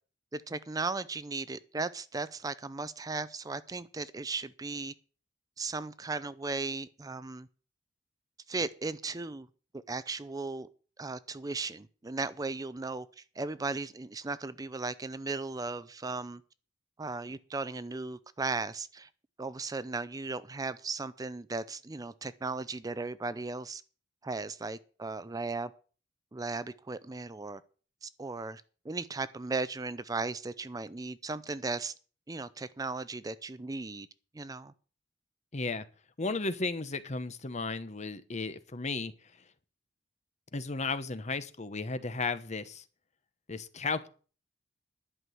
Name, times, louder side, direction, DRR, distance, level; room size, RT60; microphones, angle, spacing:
voice 1, 0.3-4.9 5.6-7.5 8.5-9.5 9.7-10.7 11.0-16.4 17.0-19.1 19.4-23.8 24.2-25.7 26.3-27.6 28.0-31.9 32.3-34.1 34.3-34.7, right 3 dB, 20° right, 0.5 m, -36 dB
voice 2, 35.5-35.9 36.2-39.1 40.5-42.8 43.5-44.1, left 3 dB, 40° left, 1.0 m, -34 dB
11.0 x 6.2 x 9.2 m
head